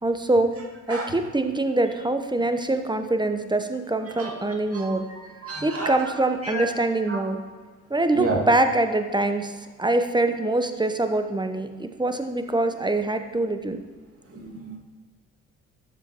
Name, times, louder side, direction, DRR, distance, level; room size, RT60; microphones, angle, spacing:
voice 1, 0.0-0.6 0.9-5.1 5.6-7.4 7.9-13.8, right 2 dB, 10° right, 8 dB, 0.9 m, -24 dB
voice 2, 4.7-6.0 6.4-6.7 7.1-7.2 8.2-8.4 14.3-14.8, right 2 dB, 35° right, -1 dB, 2.2 m, -31 dB
12.5 x 7.8 x 3.0 m, 1.4 s
hypercardioid pair, 45°, 38 cm